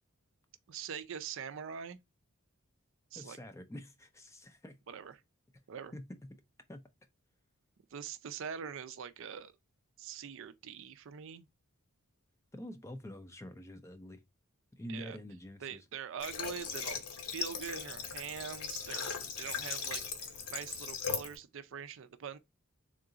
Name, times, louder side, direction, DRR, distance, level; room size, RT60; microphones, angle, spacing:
voice 1, 0.7-2.0 3.1-3.4 4.9-5.2 5.7-5.9 7.9-9.5 10.0-11.5 14.9-15.2 15.6-22.4, right 7 dB, 60° right, 0.4 m, -43 dB
voice 2, 3.1-4.8 5.9-6.0 6.7-6.8 12.5-14.2 14.7-15.8, equal, 15° left, 0.3 m, -46 dB
Water / Water tap faucet, 16.2-21.3, left 6 dB, 90° left, 0.9 m, -39 dB
3.7 x 2.4 x 3.8 m
head